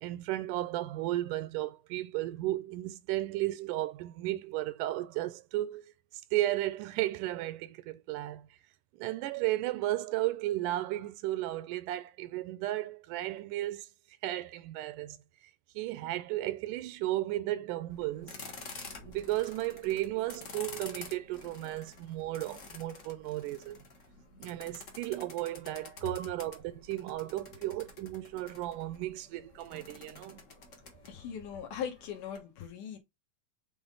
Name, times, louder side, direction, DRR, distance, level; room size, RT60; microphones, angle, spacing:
voice 1, 0.0-5.9 6.3-8.5 9.0-13.9 14.2-15.2 15.8-18.4 19.0-23.8 24.4-30.4, right 15 dB, 80° right, 2.1 m, -34 dB
sound 1, 17.9-32.4, left 3 dB, 55° left, 0.8 m, -50 dB
voice 2, 31.1-33.0, left 8 dB, 75° left, 3.0 m, -40 dB
7.0 x 3.7 x 3.9 m
omnidirectional pair, 3.7 m